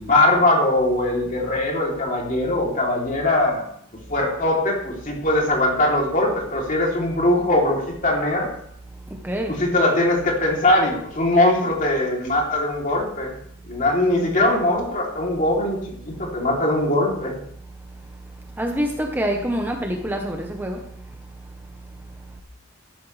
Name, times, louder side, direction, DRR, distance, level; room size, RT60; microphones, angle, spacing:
voice 1, 0.0-3.6 4.1-8.5 9.5-13.3 13.7-17.3, left 1 dB, 40° left, -2 dB, 3.0 m, -21 dB
voice 2, 9.1-9.6 18.6-21.1, equal, 10° right, 2 dB, 0.9 m, -26 dB
12.5 x 11.0 x 3.3 m, 0.70 s
head